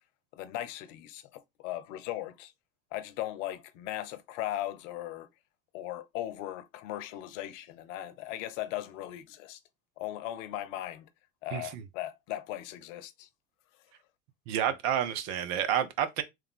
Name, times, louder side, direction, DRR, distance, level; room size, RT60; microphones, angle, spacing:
voice 1, 0.3-2.5 2.9-5.3 5.7-9.6 10.0-11.1 11.4-13.3, left 13 dB, 70° left, 0.7 m, -38 dB
voice 2, 11.5-11.8 14.5-16.2, right 9 dB, 65° right, 0.9 m, -29 dB
3.4 x 3.2 x 3.5 m
hypercardioid pair, 75°, 39 cm